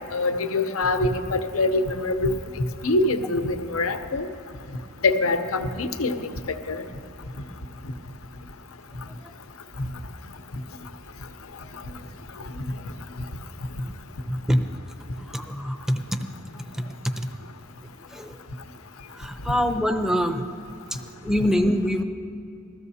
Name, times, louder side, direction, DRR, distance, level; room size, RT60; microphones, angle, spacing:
voice 1, 0.1-2.4 2.8-4.3 5.0-6.3 6.7-6.8, left 2 dB, 75° left, 8 dB, 0.8 m, -24 dB
voice 2, 14.3-14.6 15.2-16.2 16.6-16.8 17.2-17.3 18.1-18.4 19.1-20.5 20.9-22.0, equal, ahead, 6 dB, 0.6 m, -25 dB
20.0 x 14.0 x 2.8 m, 2.8 s
head